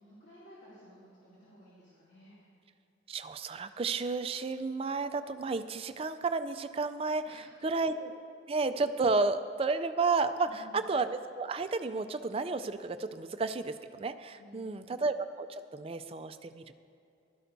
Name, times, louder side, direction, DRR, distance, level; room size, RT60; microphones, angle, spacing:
voice 1, 0.0-2.4 7.3-7.4 10.5-10.9 14.4-15.0, equal, 75° left, -11 dB, 2.7 m, -54 dB
voice 2, 3.1-8.1 8.5-16.7, right 3 dB, 30° right, 10 dB, 0.3 m, -32 dB
15.5 x 12.5 x 2.7 m, 2.6 s
head